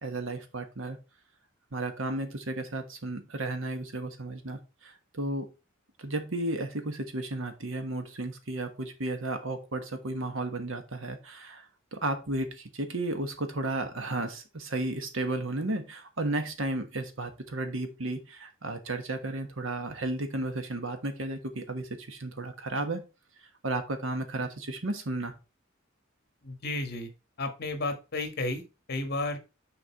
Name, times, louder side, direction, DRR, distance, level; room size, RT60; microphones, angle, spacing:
voice 1, 0.0-1.0 1.7-5.5 6.0-11.7 11.9-23.1 23.6-25.3, right 2 dB, 65° right, 7 dB, 1.3 m, -33 dB
voice 2, 26.4-27.1 27.4-28.6 28.9-29.4, left 2 dB, 50° left, 7 dB, 1.4 m, -32 dB
6.6 x 4.6 x 4.5 m, 0.30 s
head